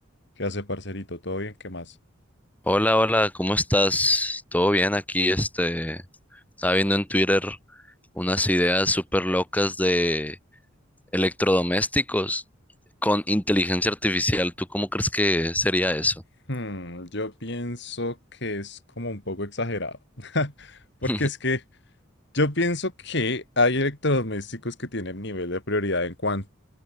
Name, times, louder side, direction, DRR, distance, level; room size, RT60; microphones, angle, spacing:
voice 1, 0.4-1.9 16.5-18.1 18.4-19.9 20.2-20.5 21.0-21.6 22.3-26.5, left 2 dB, 60° left, 5.2 m, -27 dB
voice 2, 2.7-6.0 6.6-7.6 8.2-10.4 11.1-12.4 13.0-16.2 21.1-21.3, left 1 dB, 10° left, 3.5 m, -23 dB
open air
head